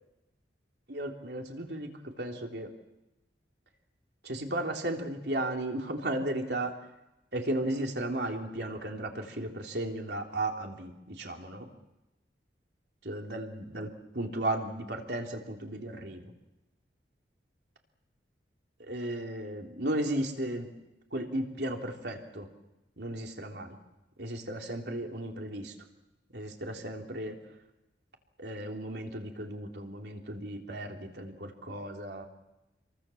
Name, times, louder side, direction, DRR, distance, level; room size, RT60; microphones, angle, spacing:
voice 1, 0.9-1.9 2.2-2.7 4.2-6.7 7.3-11.7 13.1-16.3 18.8-20.7 21.1-22.5 23.0-23.8 24.2-25.7 26.3-27.4 28.4-32.3, right 1 dB, 65° right, 2 dB, 3.6 m, -35 dB
27.5 x 23.5 x 7.3 m, 0.97 s
head